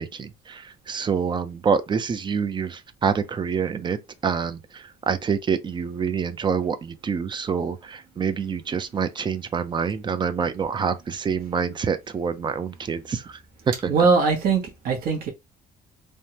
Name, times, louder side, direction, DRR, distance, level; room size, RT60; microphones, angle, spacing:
voice 1, 0.0-4.0 4.2-13.9, right 6 dB, 30° right, 0.5 m, -26 dB
voice 2, 13.9-15.3, right 5 dB, 60° right, 1.1 m, -21 dB
3.3 x 2.1 x 2.8 m
cardioid pair, 110°, 17 cm